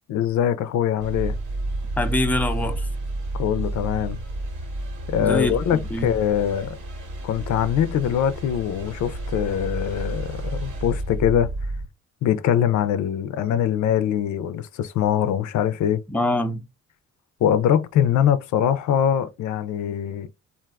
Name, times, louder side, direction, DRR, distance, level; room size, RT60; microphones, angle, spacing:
voice 1, 0.1-1.4 3.3-4.2 5.1-6.8 7.2-11.5 12.2-16.0 17.4-20.3, left 9 dB, 70° left, 0.5 m, -23 dB
sound 1, 1.0-11.9, right 1 dB, 75° right, 1.4 m, -31 dB
voice 2, 2.0-2.9 5.2-6.1 16.1-16.6, left 1 dB, 5° left, 0.6 m, -24 dB
3.4 x 2.5 x 2.4 m
cardioid pair, 90°, 30 cm